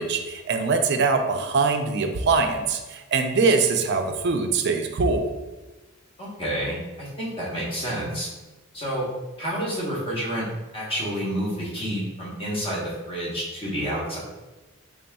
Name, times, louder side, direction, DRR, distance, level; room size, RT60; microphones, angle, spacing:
voice 1, 0.0-5.3, right 4 dB, 50° right, 6 dB, 0.4 m, -23 dB
voice 2, 6.2-8.3 8.7-9.1 9.4-10.4 10.7-14.2, equal, 25° left, -6 dB, 1.1 m, -29 dB
3.9 x 3.7 x 2.3 m, 1.1 s
head